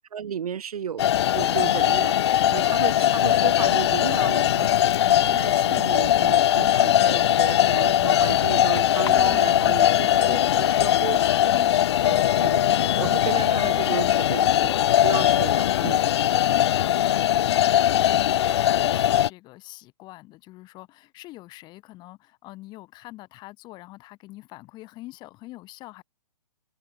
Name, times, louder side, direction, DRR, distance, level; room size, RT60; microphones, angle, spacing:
voice 1, 0.1-11.5 12.0-16.0, right 8 dB, 65° right, 2.3 m, -34 dB
sound 1, 1.0-19.3, left 11 dB, 40° left, 0.6 m, -20 dB
voice 2, 9.0-11.0 11.4-11.8 13.7-14.3 15.7-26.0, left 18 dB, 20° left, 6.6 m, -43 dB
hypercardioid pair, 155°, 20 cm